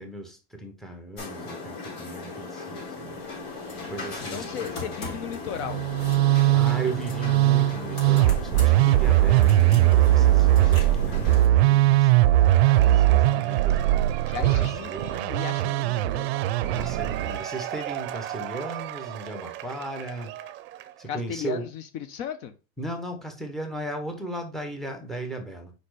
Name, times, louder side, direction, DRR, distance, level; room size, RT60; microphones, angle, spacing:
voice 1, 0.0-3.2 3.9-4.7 6.5-12.1 12.7-13.9 14.4-15.1 16.7-20.3 21.0-21.7 22.8-25.7, right 2 dB, ahead, 1.1 m, -36 dB
sound 1, 1.2-11.5, left 3 dB, 70° left, 4.0 m, -37 dB
voice 2, 4.3-5.8 14.2-17.1 21.1-21.8 22.1-22.5, left 8 dB, 50° left, 0.8 m, -36 dB
Musical instrument, 5.6-17.4, right 15 dB, 80° right, 0.5 m, -20 dB
Cheering / Applause / Crowd, 12.1-21.0, right 13 dB, 35° right, 0.7 m, -36 dB
5.1 x 4.3 x 4.9 m
supercardioid pair, 135°, 31 cm